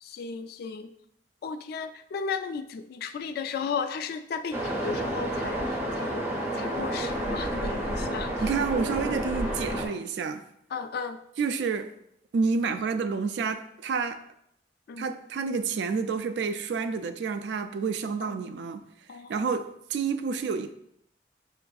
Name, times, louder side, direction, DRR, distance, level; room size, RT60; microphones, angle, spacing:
voice 1, 0.0-0.9 1.4-6.2 6.5-8.3 10.7-11.2 14.9-15.1 18.2-18.4 19.1-19.5, left 5 dB, 60° left, 0.3 m, -35 dB
Waves surf, 4.5-9.9, right 1 dB, 15° right, 0.7 m, -30 dB
voice 2, 8.4-10.4 11.4-11.9 12.3-14.2 15.0-18.8 19.3-20.7, right 5 dB, 70° right, 0.3 m, -29 dB
6.6 x 2.5 x 2.3 m
head